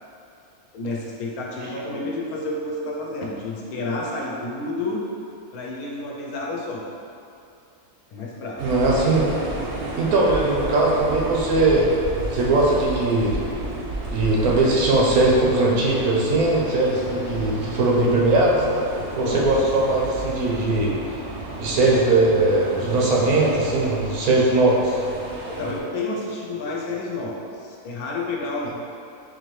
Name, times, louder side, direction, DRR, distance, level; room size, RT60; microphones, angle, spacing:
voice 1, 0.7-5.0 5.5-6.9 8.1-8.6 19.2-19.7 25.5-28.7, left 2 dB, 90° left, -2 dB, 1.1 m, -30 dB
sound 1, 8.6-25.8, right 2 dB, 60° right, 0.8 m, -32 dB
voice 2, 8.6-9.3 10.0-11.9 12.3-13.5 14.1-18.6 19.2-20.9 21.6-25.0, right 2 dB, 85° right, -3 dB, 1.2 m, -20 dB
4.2 x 2.7 x 3.1 m, 2.5 s
omnidirectional pair, 1.5 m